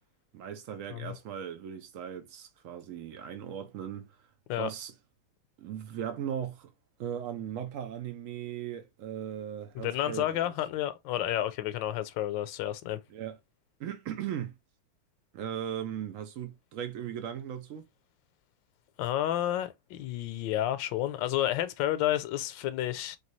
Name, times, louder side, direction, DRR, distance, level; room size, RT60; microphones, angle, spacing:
voice 1, 0.3-4.1 4.6-4.9 5.6-6.7 7.0-10.3 13.1-13.4 13.8-14.5 15.3-17.8, right 9 dB, 85° right, 0.7 m, -38 dB
voice 2, 9.7-13.0 19.0-23.2, left 13 dB, 80° left, 1.3 m, -30 dB
4.4 x 3.2 x 3.1 m
omnidirectional pair, 2.1 m